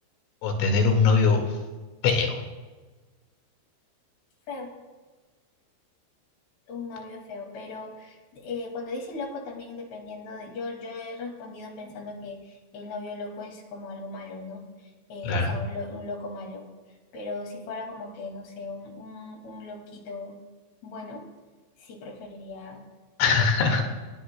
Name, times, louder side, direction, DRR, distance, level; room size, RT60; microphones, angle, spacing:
voice 1, 0.4-1.4 2.0-2.4 15.2-15.6 23.2-23.8, left 4 dB, 80° left, 3 dB, 4.5 m, -21 dB
voice 2, 6.7-14.6 15.1-16.7 17.1-20.4 20.8-21.2 21.8-22.8 23.3-23.5, left 3 dB, 60° left, 2 dB, 4.3 m, -38 dB
28.5 x 17.5 x 2.3 m, 1.3 s
omnidirectional pair, 5.6 m